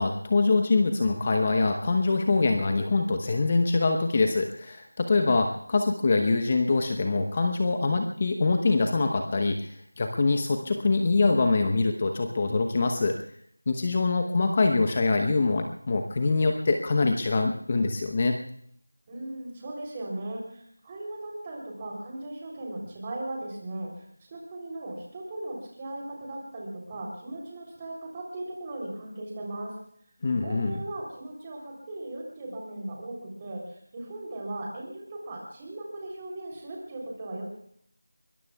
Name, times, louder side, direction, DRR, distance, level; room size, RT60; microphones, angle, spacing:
voice 1, 0.0-13.2 13.7-18.4 30.2-30.8, left 3 dB, 25° left, 5 dB, 0.9 m, -24 dB
voice 2, 19.1-29.7 30.4-37.4, right 1 dB, 15° right, -1 dB, 3.4 m, -38 dB
24.0 x 22.5 x 2.4 m, 0.65 s
figure-of-eight pair, 175°, 0 cm